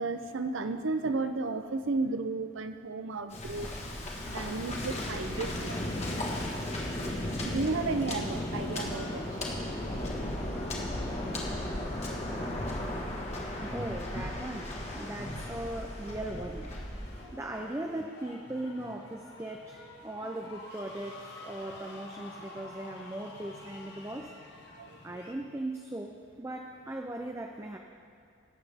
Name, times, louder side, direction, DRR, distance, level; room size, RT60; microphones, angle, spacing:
voice 1, 0.0-3.8 4.3-5.9 7.4-9.4 10.0-10.1 10.7-11.0 11.3-11.4 12.4-12.6 21.8-21.9 22.6-22.7 24.8-25.2, right 3 dB, 75° right, 9 dB, 0.6 m, -34 dB
Waves surf, 3.3-17.2, left 1 dB, 35° left, 1.5 m, -35 dB
sound 1, 5.7-25.3, left 2 dB, 55° left, 1.4 m, -50 dB
voice 2, 13.2-17.0 17.3-24.3 25.0-27.8, right 1 dB, 15° right, 2 dB, 0.4 m, -39 dB
18.5 x 7.9 x 3.5 m, 2.3 s
head